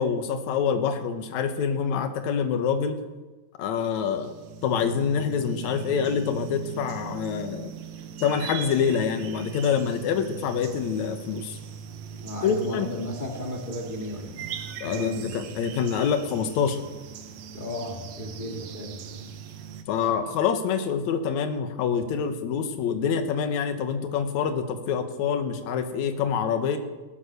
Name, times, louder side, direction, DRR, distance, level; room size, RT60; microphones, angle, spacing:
voice 1, 0.0-3.0 3.6-4.3 4.6-7.7 8.2-11.6 12.4-12.9 14.8-16.8 19.9-26.8, left 7 dB, 60° left, 7 dB, 2.2 m, -26 dB
sound 1, 3.8-19.8, right 7 dB, 70° right, 1.7 m, -40 dB
voice 2, 12.2-14.5 14.8-15.3 17.5-19.3 20.1-20.3, equal, 25° left, -1 dB, 1.1 m, -35 dB
17.5 x 10.0 x 6.7 m, 1.2 s
omnidirectional pair, 4.4 m